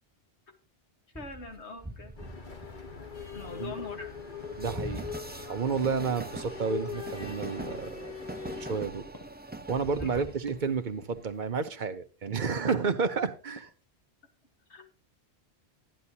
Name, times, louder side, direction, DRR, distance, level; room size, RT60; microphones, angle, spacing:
voice 1, 1.1-2.2 3.3-4.1 10.0-10.2 12.7-12.8 14.7-14.9, left 3 dB, 80° left, 1.9 m, -42 dB
Train, 1.1-11.6, right 2 dB, 15° right, 0.4 m, -43 dB
sound 1, 2.2-8.9, left 7 dB, 45° left, 1.4 m, -41 dB
sound 2, 3.8-4.1 4.4-4.8 5.1-5.5 5.7-6.1 6.4-6.7 7.0-8.0 8.5-8.8 9.1-9.4 9.8-10.1 10.5-10.8 11.0-11.4 11.7-11.9 12.3-12.6 12.9-13.2 13.6-13.8, left 1 dB, 20° left, 1.3 m, -54 dB
voice 2, 4.6-5.0 5.5-8.1 8.4-9.0 9.7-13.7, right 5 dB, 50° right, 1.0 m, -31 dB
14.0 x 9.7 x 2.8 m
omnidirectional pair, 1.1 m